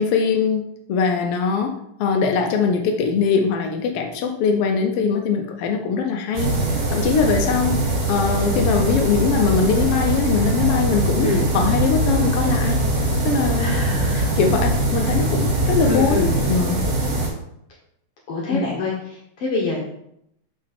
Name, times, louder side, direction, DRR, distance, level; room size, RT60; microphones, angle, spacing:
voice 1, 0.0-6.6 6.9-7.8 8.1-12.8 13.2-13.8 14.1-16.9 18.5-18.6, left 5 dB, 90° left, 4 dB, 1.3 m, -22 dB
sound 1, 6.3-17.3, right 1 dB, 80° right, 3.1 m, -21 dB
voice 2, 13.6-14.3 15.8-16.3 18.3-18.9 19.4-19.8, left 3 dB, 60° left, -3 dB, 2.0 m, -25 dB
5.9 x 5.9 x 4.3 m, 0.76 s
omnidirectional pair, 3.5 m